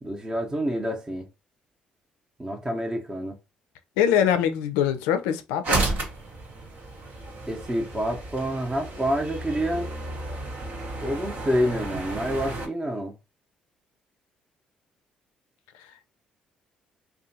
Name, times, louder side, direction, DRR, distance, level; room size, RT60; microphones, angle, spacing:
voice 1, 0.0-1.3 2.4-3.4 7.5-9.9 11.0-13.1, equal, 20° right, 0.7 m, -28 dB
voice 2, 4.0-5.8, left 9 dB, 80° left, 0.4 m, -23 dB
sound 1, 5.6-12.7, right 2 dB, 60° right, 0.8 m, -32 dB
2.7 x 2.2 x 2.6 m
hypercardioid pair, 50°, 4 cm